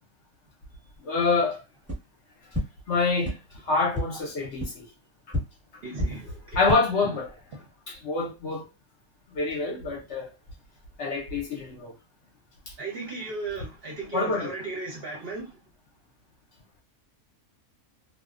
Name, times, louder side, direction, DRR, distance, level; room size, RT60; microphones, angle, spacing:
voice 1, 1.0-1.6 2.9-3.4 3.6-4.9 6.5-7.3 7.9-8.7 9.3-10.3 11.0-11.9 14.1-14.5, left 3 dB, 60° left, 0.8 m, -26 dB
sound 1, 1.8-2.0 2.5-2.6 3.2-3.3 3.9-4.0 4.6-4.7 5.3-5.4 5.9-6.1 6.5-6.8, left 1 dB, 5° right, 0.8 m, -27 dB
voice 2, 5.8-6.7 12.8-15.5, right 3 dB, 55° right, 0.7 m, -36 dB
2.5 x 2.1 x 2.4 m
omnidirectional pair, 1.5 m